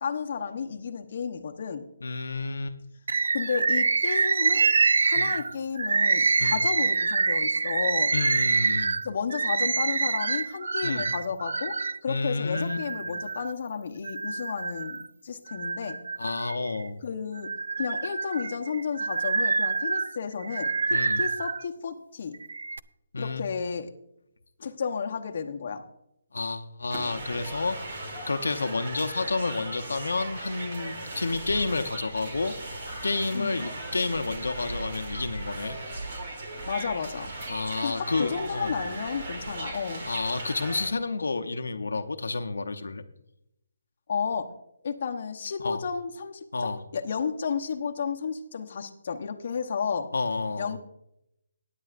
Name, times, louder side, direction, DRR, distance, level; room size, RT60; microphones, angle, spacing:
voice 1, 0.0-1.9 3.3-4.7 5.0-8.1 9.0-16.0 17.0-17.5 17.8-22.4 23.2-23.9 24.6-25.8 33.3-33.6 36.7-37.3 37.8-40.0 44.1-44.5 44.8-50.1 50.6-50.8, left 6 dB, 45° left, 3 dB, 0.9 m, -32 dB
voice 2, 2.0-2.8 5.2-5.3 6.4-6.6 8.1-9.0 10.8-11.1 12.1-12.8 16.2-17.0 20.9-21.2 23.1-23.4 26.3-28.0 28.3-32.5 33.0-35.8 37.5-38.8 40.1-43.0 45.6-45.8 46.5-46.8 50.1-50.7, left 3 dB, 85° left, 7 dB, 0.8 m, -30 dB
Bird, 3.1-12.0 12.5-13.5 14.0-15.1 15.5-16.9 17.4-21.6 22.3-22.8, right 4 dB, 75° right, 0.4 m, -26 dB
sound 1, 26.9-40.9, right 2 dB, 45° right, 2.9 m, -37 dB
16.0 x 10.0 x 2.5 m, 0.82 s
hypercardioid pair, 165°, 0 cm